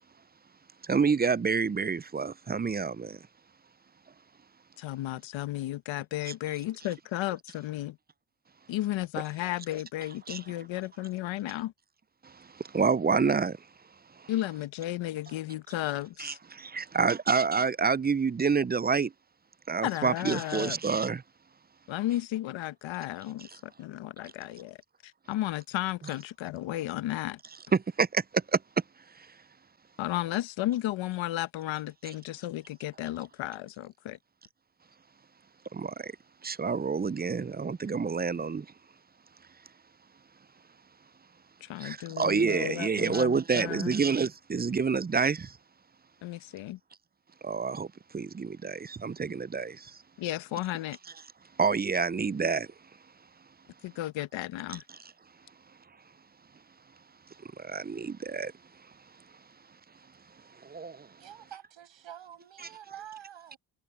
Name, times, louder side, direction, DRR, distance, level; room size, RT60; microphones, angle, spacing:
voice 1, 0.8-3.2 10.3-10.4 12.2-13.6 16.2-19.1 19.7-21.2 27.7-28.6 29.2-29.3 35.7-36.1 36.4-38.7 41.8-45.6 47.4-47.9 48.1-50.0 51.6-52.7 57.6-58.5 60.6-61.1, right 5 dB, 20° right, 0.6 m, -28 dB
voice 2, 4.8-8.0 8.7-11.7 14.3-16.4 19.8-20.8 21.9-24.8 25.0-27.4 30.0-34.2 41.6-43.9 46.2-46.8 50.2-51.0 53.8-54.8, left 15 dB, 85° left, 1.3 m, -34 dB
voice 3, 61.2-63.6, right 10 dB, 75° right, 6.3 m, -47 dB
supercardioid pair, 45°, 45 cm